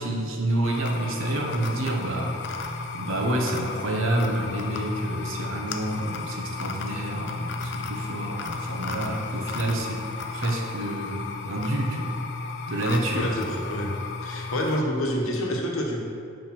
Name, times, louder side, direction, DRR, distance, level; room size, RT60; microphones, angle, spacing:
voice 1, 0.0-10.1 10.3-12.2 12.7-13.3, right 1 dB, 75° right, 0 dB, 0.9 m, -28 dB
sound 1, 0.6-14.8, left 4 dB, 55° left, 0.4 m, -34 dB
voice 2, 13.1-13.9 14.2-16.0, equal, 90° left, 0 dB, 1.0 m, -27 dB
4.8 x 4.4 x 5.8 m, 2.4 s
head